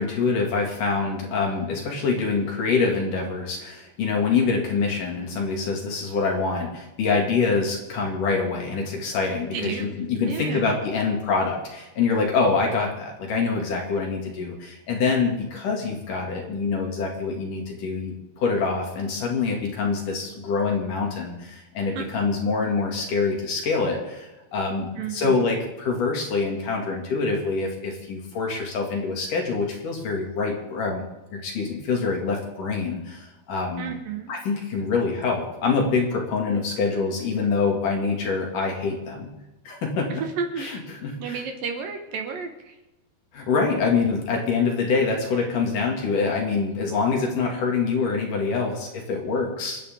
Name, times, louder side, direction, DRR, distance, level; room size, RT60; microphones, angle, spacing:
voice 1, 0.0-31.1 31.3-33.9 34.3-39.3 39.7-40.2 40.6-41.4 43.3-49.8, left 4 dB, 60° left, 0 dB, 3.9 m, -25 dB
voice 2, 9.5-9.9 10.2-10.7 22.0-22.1 25.0-25.5 33.8-34.3 40.1-40.7 41.2-42.8, right 6 dB, 70° right, 5 dB, 2.9 m, -32 dB
28.5 x 10.0 x 3.9 m, 1.0 s
omnidirectional pair, 4.5 m